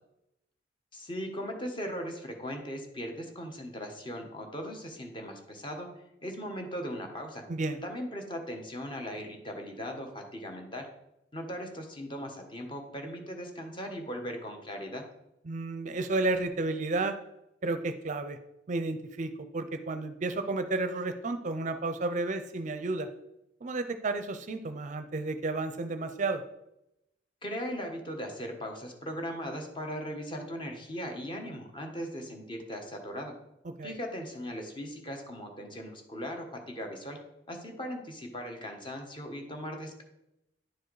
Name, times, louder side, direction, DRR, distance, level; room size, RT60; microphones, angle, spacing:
voice 1, 0.9-5.9 6.2-7.4 7.8-10.9 11.3-15.0 27.4-33.3 33.8-37.2 37.5-40.0, equal, 25° left, 3 dB, 1.3 m, -38 dB
voice 2, 15.5-17.2 17.6-18.4 18.7-23.1 23.6-26.4 33.6-33.9, right 2 dB, 40° right, 9 dB, 0.5 m, -32 dB
10.5 x 4.7 x 4.7 m, 0.86 s
head